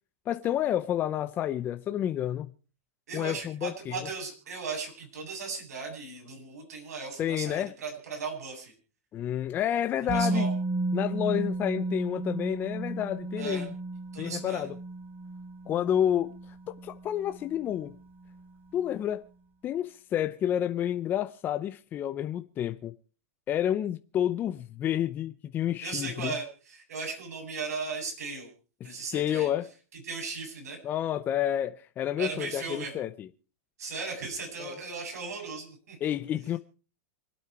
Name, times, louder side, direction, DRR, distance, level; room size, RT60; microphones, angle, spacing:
voice 1, 0.3-2.5 3.1-4.1 7.2-7.7 9.1-10.5 10.9-13.7 14.2-14.7 15.7-16.3 16.7-17.9 18.7-19.2 19.6-22.9 23.5-26.3 28.8-29.7 30.8-33.3 34.6-34.8 36.0-36.6, left 10 dB, 25° left, 0.7 m, -30 dB
voice 2, 3.1-8.7 10.1-10.5 13.4-13.7 14.1-14.7 25.8-28.5 28.8-29.5 30.1-30.8 32.2-32.9 33.8-36.0, right 4 dB, 90° right, 7.8 m, -37 dB
Musical instrument, 10.1-18.0 18.3-18.4, right 2 dB, 25° right, 5.5 m, -34 dB
26.5 x 9.0 x 4.8 m
supercardioid pair, 150°, 8 cm